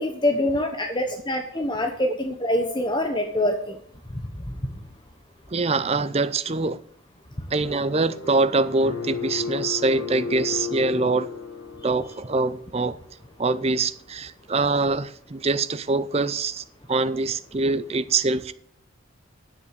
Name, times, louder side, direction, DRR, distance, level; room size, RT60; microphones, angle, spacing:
voice 1, 0.0-3.8, left 1 dB, 20° left, 1.1 m, -25 dB
voice 2, 5.5-6.8 7.5-11.3 11.8-13.0 13.4-18.5, right 3 dB, 30° right, 0.5 m, -24 dB
sound 1, 7.6-12.8, left 5 dB, 90° left, 2.4 m, -34 dB
9.8 x 7.6 x 8.2 m
head